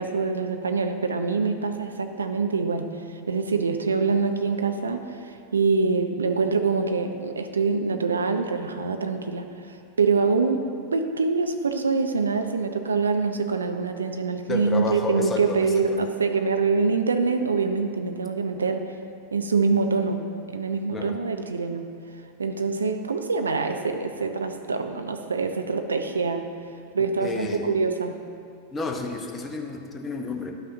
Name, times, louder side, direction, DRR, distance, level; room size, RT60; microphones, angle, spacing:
voice 1, 0.0-2.9 3.3-9.5 10.0-18.8 19.3-21.9 22.4-26.5 26.9-28.2, right 4 dB, 75° right, 6 dB, 0.5 m, -25 dB
voice 2, 14.5-16.0 20.9-21.2 27.2-27.8 28.7-30.5, left 3 dB, 15° left, 2 dB, 0.8 m, -31 dB
11.0 x 5.8 x 2.7 m, 2.4 s
figure-of-eight pair, 90°, 0 cm